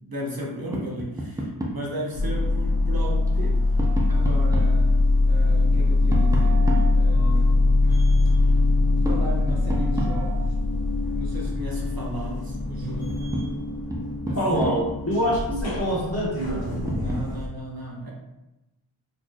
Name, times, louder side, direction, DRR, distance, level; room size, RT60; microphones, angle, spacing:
voice 1, 0.0-3.8 4.1-5.0 5.3-6.7 6.9-7.9 9.1-10.5 11.1-13.2 14.3-14.8 17.0-18.1, right 1 dB, 50° right, -3 dB, 0.8 m, -35 dB
Tap, 0.7-1.9 3.3-4.8 6.1-7.5 9.0-10.6 12.4-12.5 12.9-15.1 16.6-17.3, right 1 dB, 10° right, 0.4 m, -32 dB
sound 1, 2.1-17.5, left 2 dB, 50° left, 0.8 m, -22 dB
voice 2, 14.3-16.7, equal, 30° left, -6 dB, 1.3 m, -25 dB
4.1 x 3.0 x 2.3 m, 0.98 s
wide cardioid pair, 85°, 48 cm